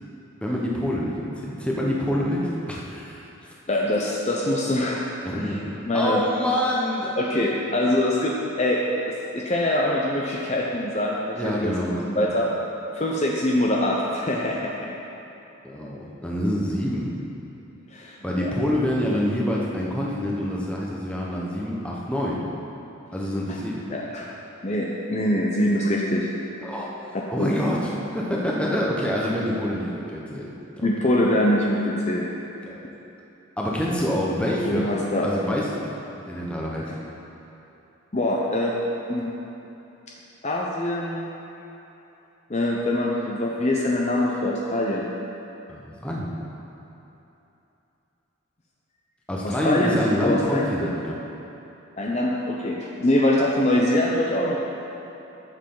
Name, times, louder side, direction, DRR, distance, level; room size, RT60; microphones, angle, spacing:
voice 1, 0.4-3.3 5.2-7.2 11.4-12.4 15.6-17.1 18.2-22.4 23.1-23.9 26.6-26.9 27.3-30.5 30.8-30.9 32.7-32.9 33.6-34.9 35.2-35.9 36.2-37.0 45.7-46.3 49.3-51.1, equal, 5° left, -4 dB, 1.1 m, -26 dB
voice 2, 3.7-5.1 5.3-5.6 5.9-6.2 7.2-8.8 9.1-11.8 12.0-12.5 12.9-14.8 17.9-18.5 23.5-23.6 23.9-24.3 24.6-26.3 27.4-27.6 30.8-32.3 34.6-35.3 38.1-38.8 39.1-39.4 40.4-41.3 42.5-45.1 49.4-50.9 52.0-54.6, left 1 dB, 30° left, -3 dB, 0.7 m, -24 dB
13.0 x 7.5 x 3.9 m, 2.9 s
head